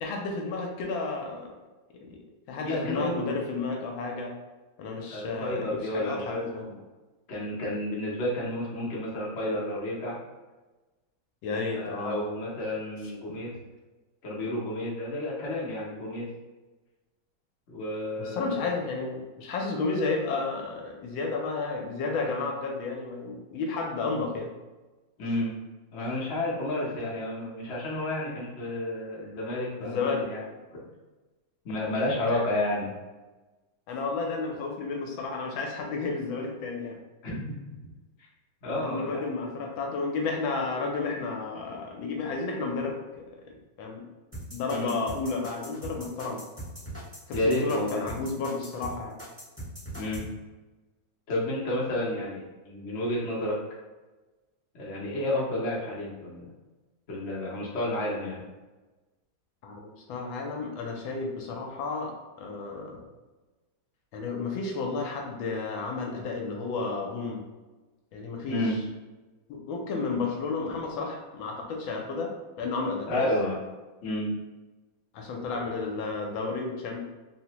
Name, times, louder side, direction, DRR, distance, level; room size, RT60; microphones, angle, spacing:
voice 1, 0.0-1.5 2.0-4.3 4.8-6.7 11.4-12.2 18.2-24.5 29.8-30.2 33.9-37.0 38.8-43.0 43.8-44.1 44.5-46.4 47.3-49.2 59.6-63.1 64.1-67.4 68.1-68.6 69.5-73.3 75.1-77.0, left 4 dB, 80° left, 1 dB, 1.3 m, -32 dB
voice 2, 2.6-3.2 5.1-6.8 7.3-10.2 11.7-13.5 14.2-16.3 17.7-18.8 25.2-25.6 25.9-30.4 30.7-30.8 31.6-32.9 37.2-37.4 37.8-37.9 38.6-39.3 44.7-45.0 47.3-48.3 49.9-50.3 51.3-53.6 54.7-56.5 57.1-58.4 68.5-68.8 73.1-73.6 74.0-74.3, left 1 dB, 55° left, -5 dB, 0.7 m, -31 dB
sound 1, 44.3-50.2, right 1 dB, 10° right, 0.8 m, -40 dB
3.6 x 2.1 x 2.8 m, 1.2 s
omnidirectional pair, 2.2 m